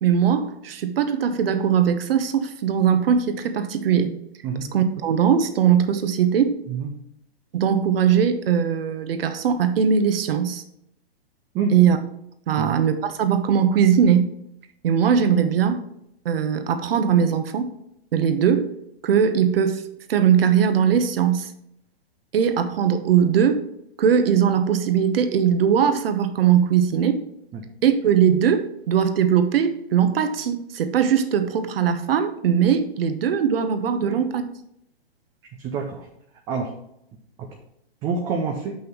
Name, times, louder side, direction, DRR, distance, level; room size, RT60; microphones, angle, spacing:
voice 1, 0.0-4.1 4.7-6.5 7.5-10.6 11.7-12.0 12.5-14.3 14.8-15.8 16.2-17.7 18.1-18.7 19.0-19.8 20.1-21.5 22.3-23.6 24.0-27.2 27.8-34.4, right 8 dB, 65° right, 9 dB, 1.1 m, -20 dB
voice 2, 35.6-36.0 36.5-36.7 38.0-38.8, right 5 dB, 10° right, 2 dB, 0.3 m, -27 dB
6.1 x 5.5 x 5.2 m, 0.76 s
hypercardioid pair, 140°, 32 cm